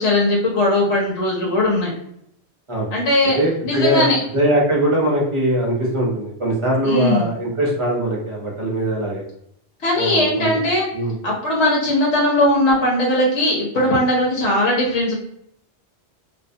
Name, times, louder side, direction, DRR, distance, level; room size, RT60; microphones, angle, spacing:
voice 1, 0.0-1.9 2.9-3.4 3.6-4.2 6.8-7.3 9.8-10.9 11.2-15.1, left 1 dB, 85° left, -4 dB, 1.0 m, -19 dB
voice 2, 3.3-4.0 4.3-9.2 10.0-10.5 10.9-11.1, right 1 dB, 35° right, -3 dB, 0.5 m, -21 dB
2.3 x 2.2 x 2.6 m, 0.74 s
omnidirectional pair, 1.1 m